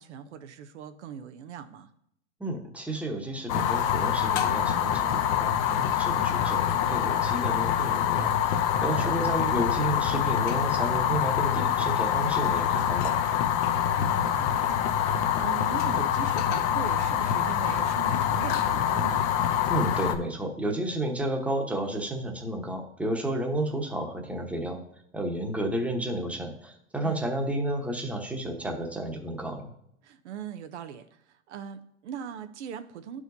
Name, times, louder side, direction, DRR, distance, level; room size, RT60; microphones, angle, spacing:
voice 1, 0.0-1.9 8.9-9.2 13.7-19.3 27.0-27.3 30.0-33.2, right 8 dB, 80° right, 9 dB, 0.7 m, -40 dB
voice 2, 2.4-13.1 19.7-24.8 25.1-29.7, right 1 dB, 5° right, 2 dB, 1.0 m, -31 dB
Fire, 3.5-20.2, left 9 dB, 50° left, 0.7 m, -25 dB
11.0 x 4.8 x 2.7 m, 0.73 s
hypercardioid pair, 110°, 35 cm